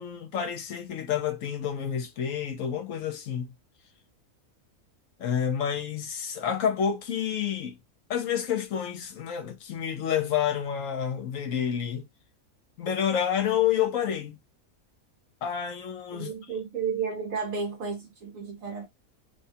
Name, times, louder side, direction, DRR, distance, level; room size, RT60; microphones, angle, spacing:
voice 1, 0.0-3.5 5.2-7.7 8.1-12.0 12.8-14.4 15.4-16.3, left 8 dB, 70° left, 1.0 m, -29 dB
voice 2, 16.1-18.9, right 5 dB, 70° right, 1.4 m, -32 dB
3.1 x 2.3 x 2.8 m
omnidirectional pair, 1.5 m